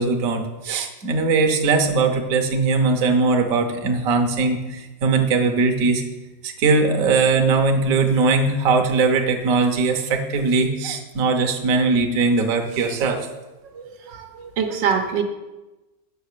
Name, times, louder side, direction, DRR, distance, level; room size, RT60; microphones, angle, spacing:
voice 1, 0.0-6.0 6.4-13.3, right 4 dB, 55° right, 4 dB, 1.3 m, -20 dB
voice 2, 13.7-15.2, right 7 dB, 80° right, 4 dB, 1.6 m, -25 dB
8.3 x 6.4 x 6.6 m, 1.1 s
omnidirectional pair, 2.0 m